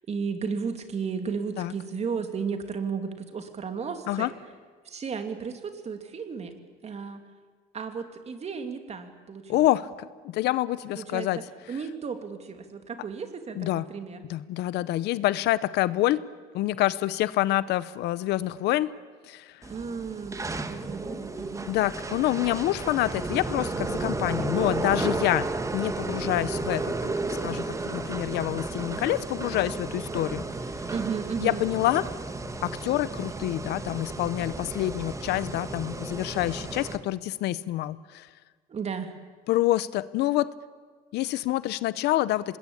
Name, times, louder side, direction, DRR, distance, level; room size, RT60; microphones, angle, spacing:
voice 1, 0.1-4.3 4.8-6.5 6.8-7.2 7.7-9.7 10.9-14.2 19.7-21.7 30.9-31.6 38.7-39.1, right 5 dB, 40° right, 7 dB, 2.8 m, -34 dB
voice 2, 9.5-11.4 13.6-13.8 14.3-16.2 16.5-18.9 19.3-19.6 21.7-25.5 25.7-30.4 31.4-32.0 32.6-38.3 39.5-40.5 41.1-42.6, left 15 dB, 80° left, 17 dB, 0.8 m, -27 dB
sound 1, 19.6-37.0, right 3 dB, 20° right, 1.5 m, -33 dB
25.0 x 20.5 x 8.7 m, 1.5 s
cardioid pair, 110°, 17 cm